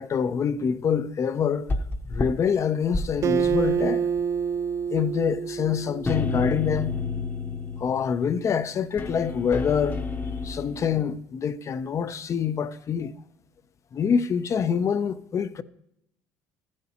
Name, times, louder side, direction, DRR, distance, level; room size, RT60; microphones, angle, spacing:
voice 1, 0.0-1.7 2.1-4.1 4.9-7.0 7.8-10.0 10.4-13.2 13.9-15.6, left 7 dB, 40° left, 0.6 m, -26 dB
sound 1, 1.7-2.3 2.8-3.8 4.2-4.3 6.0-8.2 9.0-10.9, left 4 dB, 25° left, 0.9 m, -30 dB
Acoustic guitar, 3.2-6.7, right 7 dB, 45° right, 0.4 m, -27 dB
14.0 x 11.0 x 2.9 m
supercardioid pair, 80°, 8 cm